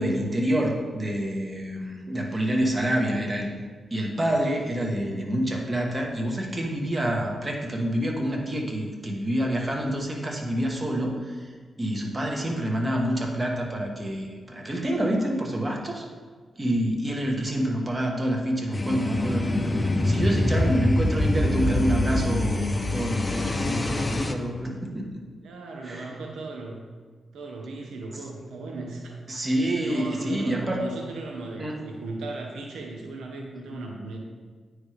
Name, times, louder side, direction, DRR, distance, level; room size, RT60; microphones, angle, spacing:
voice 1, 0.0-3.5 3.9-11.5 11.8-16.1 16.6-19.6 20.0-25.0 25.8-26.1 29.3-30.9 31.6-31.8, right 1 dB, 30° right, 1 dB, 1.3 m, -27 dB
sound 1, 18.7-24.3, left 1 dB, 25° left, 0.6 m, -25 dB
voice 2, 25.4-26.8 27.3-29.2 29.8-34.2, right 2 dB, 85° right, 1 dB, 0.8 m, -37 dB
9.1 x 3.3 x 5.0 m, 1.5 s
cardioid pair, 65°, 0 cm